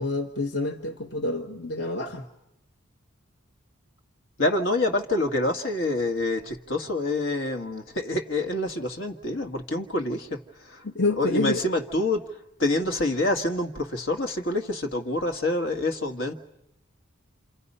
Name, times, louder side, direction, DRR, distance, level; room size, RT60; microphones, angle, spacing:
voice 1, 0.0-2.2 10.8-11.6, left 2 dB, 55° left, 3 dB, 1.5 m, -28 dB
voice 2, 4.4-10.8 11.2-12.2 12.6-16.3, left 2 dB, 70° left, 5 dB, 1.8 m, -27 dB
28.5 x 28.0 x 5.5 m, 0.86 s
head